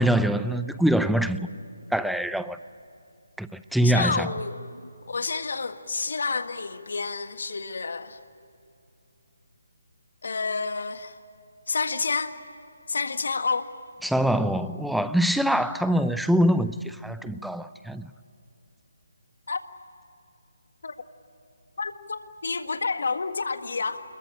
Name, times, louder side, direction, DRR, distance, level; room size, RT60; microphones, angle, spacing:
voice 1, 0.0-1.5 1.9-2.6 3.4-4.3 14.0-18.1, equal, ahead, 12 dB, 0.5 m, -24 dB
voice 2, 3.8-4.8 5.1-8.2 10.2-11.2 11.7-12.3 12.9-13.7 19.5-19.6 20.8-20.9 21.8-24.0, left 4 dB, 65° left, 9 dB, 1.8 m, -29 dB
27.5 x 22.0 x 8.9 m, 2.6 s
figure-of-eight pair, 150°, 0 cm